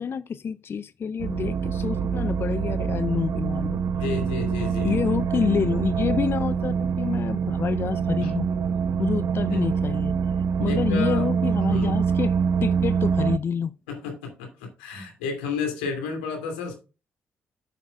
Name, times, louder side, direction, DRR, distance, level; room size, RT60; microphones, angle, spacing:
voice 1, 0.0-4.1 4.8-8.5 9.0-13.7, left 7 dB, 45° left, 0.4 m, -28 dB
sound 1, 1.2-13.4, right 6 dB, 60° right, 0.7 m, -25 dB
voice 2, 4.0-5.0 8.2-8.3 9.5-9.6 10.6-11.3 11.7-11.9 13.9-16.7, left 4 dB, 85° left, 2.6 m, -31 dB
10.0 x 8.6 x 2.3 m
hypercardioid pair, 40°, 6 cm